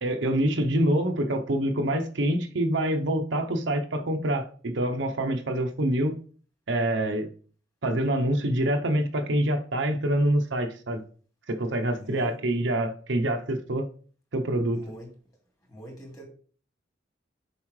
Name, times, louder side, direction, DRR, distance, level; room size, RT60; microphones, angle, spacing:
voice 1, 0.0-6.2 6.7-7.3 7.8-11.0 11.5-13.8 14.3-14.8, right 1 dB, 70° right, 5 dB, 0.8 m, -26 dB
voice 2, 11.9-12.3 14.7-15.1 15.7-16.2, right 1 dB, 20° left, 0 dB, 2.5 m, -42 dB
7.3 x 5.4 x 3.2 m, 0.42 s
head